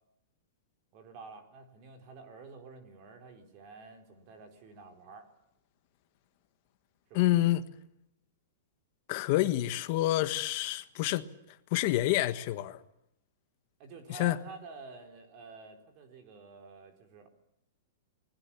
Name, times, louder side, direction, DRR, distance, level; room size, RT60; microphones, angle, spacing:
voice 1, 0.9-5.3 7.1-7.2 13.8-17.3, right 4 dB, 30° right, 4.2 m, -49 dB
voice 2, 7.1-7.6 9.1-11.3 11.7-12.8 14.1-14.4, left 15 dB, 35° left, 1.4 m, -28 dB
27.5 x 21.0 x 7.2 m
supercardioid pair, 180°, 0 cm